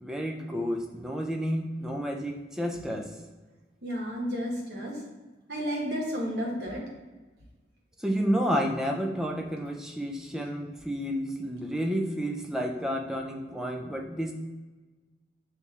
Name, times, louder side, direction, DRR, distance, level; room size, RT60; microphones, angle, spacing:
voice 1, 0.0-3.1 8.0-14.3, equal, 5° right, 1 dB, 0.4 m, -30 dB
voice 2, 3.8-5.0 5.5-6.8, equal, 60° right, -2 dB, 1.2 m, -32 dB
7.9 x 2.7 x 2.4 m, 1.3 s
head